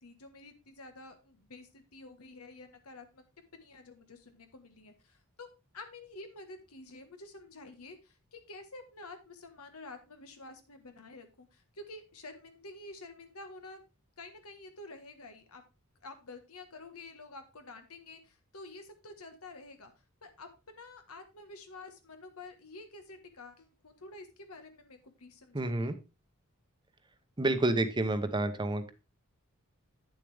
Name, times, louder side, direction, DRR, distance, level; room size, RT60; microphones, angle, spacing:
voice 1, 0.0-3.2 3.6-5.5 5.7-13.8 14.2-15.6 16.0-19.9 20.2-25.9, left 2 dB, 90° left, 7 dB, 1.4 m, -49 dB
voice 2, 25.5-26.0 27.4-28.9, right 2 dB, 20° right, 10 dB, 0.8 m, -29 dB
9.1 x 7.0 x 3.4 m, 0.29 s
head